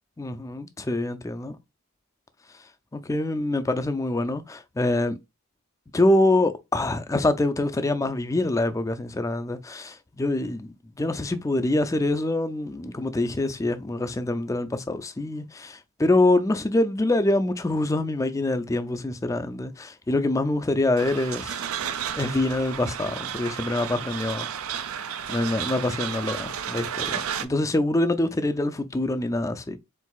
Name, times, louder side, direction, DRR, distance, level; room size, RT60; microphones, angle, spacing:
voice 1, 0.2-1.6 2.9-5.2 5.9-21.7 22.2-24.5 25.3-29.8, left 2 dB, 15° left, 0.3 m, -25 dB
sound 1, 21.0-27.5, right 8 dB, 80° right, 0.5 m, -32 dB
4.5 x 3.9 x 2.3 m
head